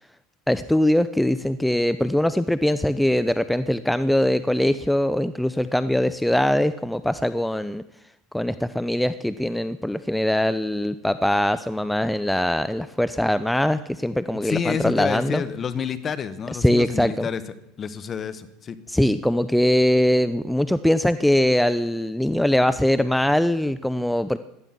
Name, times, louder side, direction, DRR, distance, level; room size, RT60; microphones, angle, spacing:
voice 1, 0.5-7.8 8.3-15.4 16.5-17.3 18.9-24.4, left 1 dB, 5° left, 13 dB, 0.6 m, -22 dB
voice 2, 14.4-17.4 17.8-18.8, left 7 dB, 35° left, 12 dB, 1.4 m, -29 dB
17.5 x 12.5 x 6.1 m, 0.84 s
hypercardioid pair, 85°, 0 cm